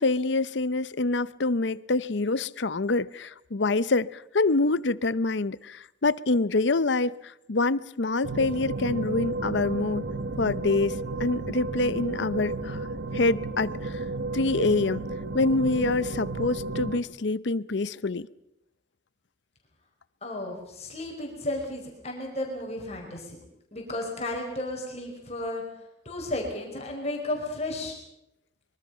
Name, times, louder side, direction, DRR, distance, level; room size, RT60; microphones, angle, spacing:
voice 1, 0.0-10.1 10.4-12.8 13.1-14.0 14.3-15.0 15.3-18.3, left 3 dB, 75° left, 0.7 m, -26 dB
sound 1, 8.2-17.0, right 2 dB, 85° right, 1.4 m, -32 dB
voice 2, 20.2-23.4 23.7-25.6 26.0-27.9, left 1 dB, 35° left, 5.0 m, -33 dB
25.0 x 23.0 x 5.7 m
head